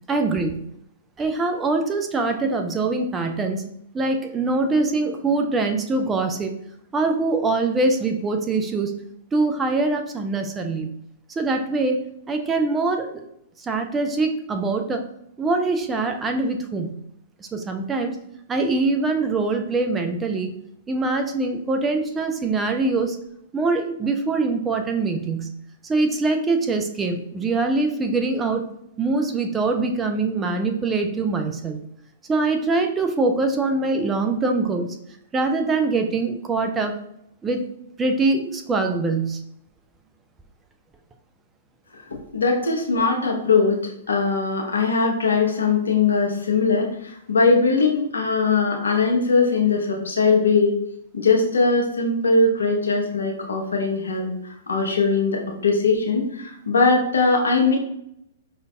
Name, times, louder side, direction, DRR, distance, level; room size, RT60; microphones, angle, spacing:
voice 1, 0.1-0.6 1.2-3.6 3.9-6.5 6.9-8.9 9.3-10.9 11.4-12.0 12.3-13.2 13.6-15.0 15.4-16.9 17.5-18.1 18.5-20.5 20.9-23.2 23.5-25.5 25.8-28.6 29.0-31.8 32.3-34.9 35.3-36.9 37.4-37.6 38.0-39.4, right 3 dB, 15° right, 5 dB, 0.4 m, -23 dB
voice 2, 42.3-43.8 44.1-50.8 51.1-57.8, left 4 dB, 70° left, 1 dB, 0.8 m, -20 dB
5.0 x 2.6 x 2.2 m, 0.75 s
figure-of-eight pair, 110°, 0 cm